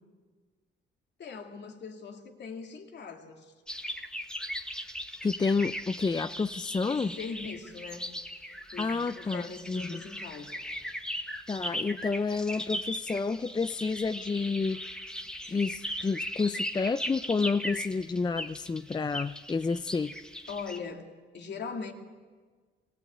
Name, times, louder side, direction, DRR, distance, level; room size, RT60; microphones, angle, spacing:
voice 1, 1.2-3.5 6.9-8.1 8.7-10.6 20.5-21.9, left 5 dB, 60° left, 2.7 m, -41 dB
sound 1, 3.7-20.8, equal, 5° left, 1.7 m, -38 dB
voice 2, 5.2-7.1 8.8-10.0 11.5-14.8 15.5-20.1, left 4 dB, 20° left, 0.6 m, -30 dB
22.5 x 16.5 x 8.8 m
cardioid pair, 90°, 20 cm